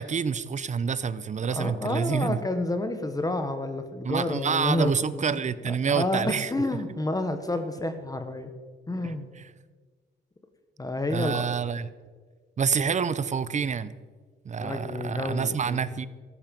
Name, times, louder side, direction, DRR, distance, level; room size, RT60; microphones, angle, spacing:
voice 1, 0.0-2.4 4.0-6.5 9.0-9.5 11.1-11.9 12.6-14.0 14.4-16.1, right 6 dB, 35° right, 16 dB, 0.7 m, -28 dB
voice 2, 1.5-5.3 5.7-8.5 8.9-9.3 10.8-11.5 14.6-15.8, left 2 dB, 20° left, 8 dB, 1.3 m, -29 dB
14.0 x 11.5 x 5.4 m, 1.5 s
cardioid pair, 90°, 20 cm